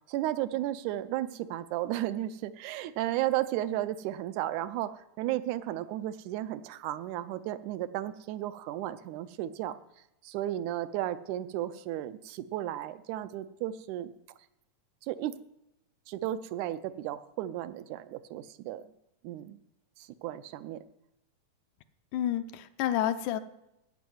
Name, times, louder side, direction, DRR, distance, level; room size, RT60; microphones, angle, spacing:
voice 1, 0.1-9.8 10.2-14.1 15.0-15.4 16.1-18.8 19.2-19.6 20.0-20.8, right 13 dB, 80° right, 13 dB, 1.9 m, -34 dB
voice 2, 22.1-23.4, left 11 dB, 80° left, 11 dB, 2.0 m, -29 dB
14.5 x 5.3 x 9.4 m, 0.87 s
omnidirectional pair, 3.7 m